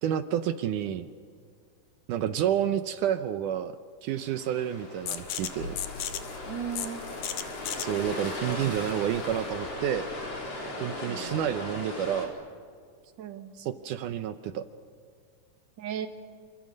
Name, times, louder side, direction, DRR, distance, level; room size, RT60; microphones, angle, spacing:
voice 1, 0.0-1.1 2.1-3.8 4.0-5.8 7.8-10.1 10.8-12.3 13.6-14.6, right 10 dB, 75° right, 10 dB, 2.3 m, -29 dB
sound 1, 4.1-12.3, left 2 dB, 45° left, 5.4 m, -38 dB
sound 2, 5.1-10.5, left 10 dB, 85° left, 3.0 m, -38 dB
sound 3, 5.6-9.4, left 3 dB, 70° left, 3.0 m, -47 dB
voice 2, 6.5-7.0 8.4-8.8 11.1-11.3 13.2-13.5 15.8-16.1, right 8 dB, 40° right, 6 dB, 1.9 m, -36 dB
28.0 x 26.0 x 6.4 m, 2.1 s
omnidirectional pair, 3.9 m